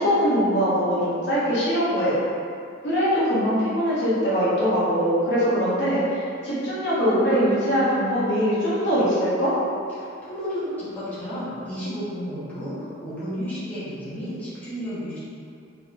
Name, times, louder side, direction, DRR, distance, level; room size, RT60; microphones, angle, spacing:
voice 1, 0.0-2.1 2.8-9.5, equal, 55° left, -9 dB, 0.8 m, -22 dB
voice 2, 10.0-15.2, equal, 10° left, -13 dB, 0.9 m, -32 dB
3.6 x 3.0 x 2.4 m, 2.5 s
head